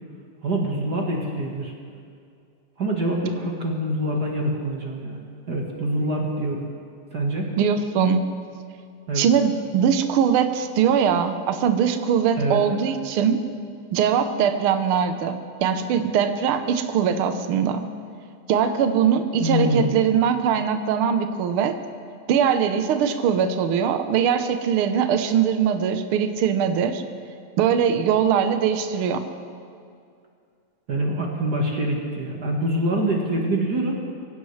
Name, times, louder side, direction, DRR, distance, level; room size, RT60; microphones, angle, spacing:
voice 1, 0.4-1.7 2.8-5.2 5.5-6.6 7.1-7.5 9.1-9.3 12.3-12.6 19.4-20.0 30.9-34.0, right 1 dB, 40° right, -1 dB, 1.7 m, -25 dB
voice 2, 7.6-8.3 9.1-13.4 13.9-17.9 18.5-21.8 22.3-27.0 27.6-29.3, right 7 dB, 65° right, 8 dB, 1.4 m, -21 dB
23.5 x 16.5 x 3.3 m, 2.4 s
omnidirectional pair, 3.3 m